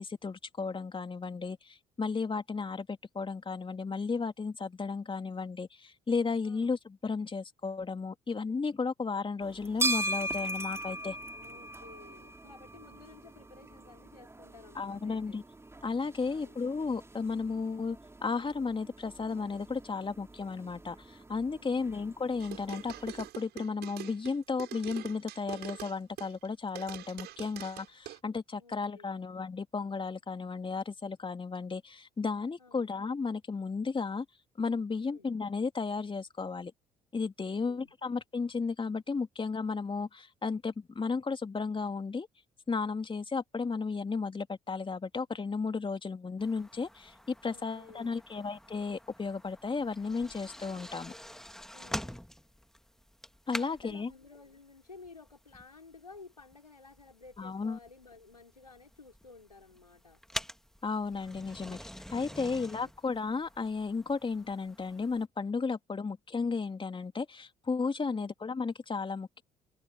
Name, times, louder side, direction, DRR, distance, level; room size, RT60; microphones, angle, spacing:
voice 1, 0.0-11.2 14.7-15.4 15.8-34.2 34.6-36.7 37.1-42.3 42.7-51.1 53.5-54.1 57.4-57.8 60.8-61.8 62.1-69.4, left 4 dB, 25° left, 2.9 m, -34 dB
sound 1, 9.4-23.3, right 2 dB, 15° right, 2.6 m, -40 dB
voice 2, 11.3-15.4 16.3-16.5 21.6-21.9 28.6-29.2 32.6-32.9 35.0-35.3 37.5-37.9 47.4-48.2 51.7-52.2 53.6-60.2 62.3-62.9 68.0-68.3, left 4 dB, 85° left, 5.1 m, -54 dB
sound 2, 22.4-26.5 26.8-28.2, right 15 dB, 55° right, 7.8 m, -44 dB
sound 3, 46.4-65.2, equal, ahead, 2.4 m, -46 dB
figure-of-eight pair, 50°, 20 cm